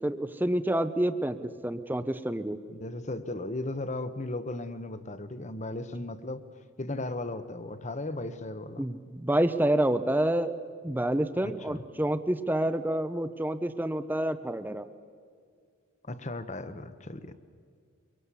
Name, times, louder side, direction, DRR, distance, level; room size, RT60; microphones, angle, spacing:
voice 1, 0.0-2.6 8.8-10.6 10.8-14.9, right 1 dB, 10° right, 11 dB, 0.7 m, -28 dB
voice 2, 2.7-6.4 6.8-8.9 11.4-11.8 16.0-17.4, left 2 dB, 35° left, 11 dB, 1.0 m, -36 dB
24.5 x 23.0 x 8.3 m, 2.1 s
head